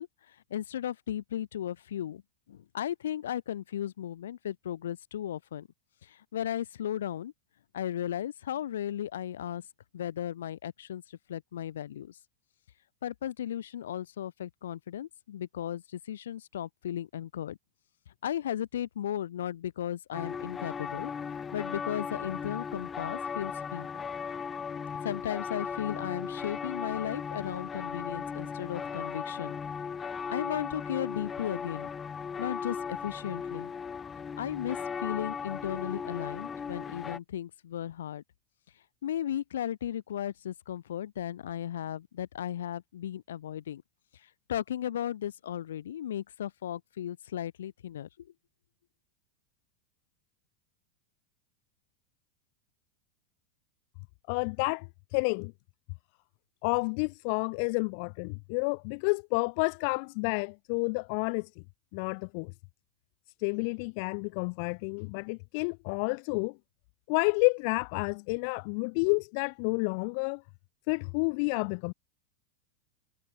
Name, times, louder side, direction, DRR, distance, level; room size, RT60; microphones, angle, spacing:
voice 1, 0.0-2.2 2.5-5.7 6.0-7.3 7.7-9.6 9.9-12.2 13.0-17.6 18.2-21.1 21.5-23.9 25.0-29.6 30.3-31.9 32.4-33.7 34.4-38.2 39.0-43.8 44.5-48.3, left 10 dB, 90° left, 1.7 m, -35 dB
sound 1, 20.1-37.2, left 6 dB, 20° left, 1.4 m, -37 dB
voice 2, 54.3-54.9 55.1-55.5 56.6-61.5 61.9-62.5 63.4-66.5 67.1-70.4 70.9-71.9, left 36 dB, 60° left, 0.4 m, -30 dB
supercardioid pair, 125°, 0 cm